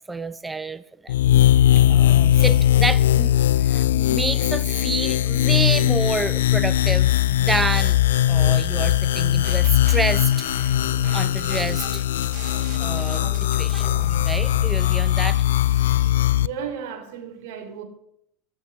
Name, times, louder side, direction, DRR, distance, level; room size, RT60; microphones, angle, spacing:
voice 1, 0.1-1.1 1.9-3.3 3.6-8.0 8.3-10.5 11.1-12.0 12.8-13.9 14.2-15.4, right 3 dB, 15° right, 0.6 m, -29 dB
sound 1, 1.1-16.5, left 12 dB, 80° left, 0.4 m, -19 dB
sound 2, 9.1-10.0 10.3-14.7, right 5 dB, 45° right, 5.2 m, -38 dB
sound 3, 11.1-16.1, left 2 dB, 5° left, 4.4 m, -50 dB
voice 2, 16.4-17.8, right 7 dB, 70° right, 3.2 m, -34 dB
15.5 x 7.3 x 9.4 m
hypercardioid pair, 90°, 0 cm